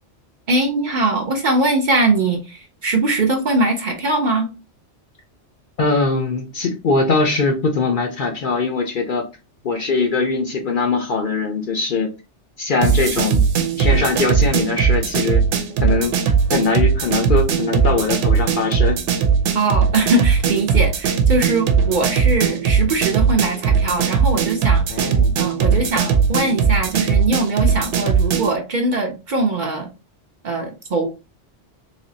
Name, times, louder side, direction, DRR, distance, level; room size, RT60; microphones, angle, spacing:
voice 1, 0.5-4.5 19.5-29.9 30.4-31.1, right 2 dB, 50° right, 1 dB, 0.6 m, -21 dB
voice 2, 5.8-9.3 9.6-12.1 12.6-13.4 13.8-15.4 15.8-16.2 16.5-19.0 24.9-25.3, left 3 dB, 55° left, 3 dB, 0.6 m, -21 dB
sound 1, 12.8-28.6, right 6 dB, 80° right, 0.9 m, -19 dB
3.3 x 3.0 x 2.6 m, 0.29 s
omnidirectional pair, 1.2 m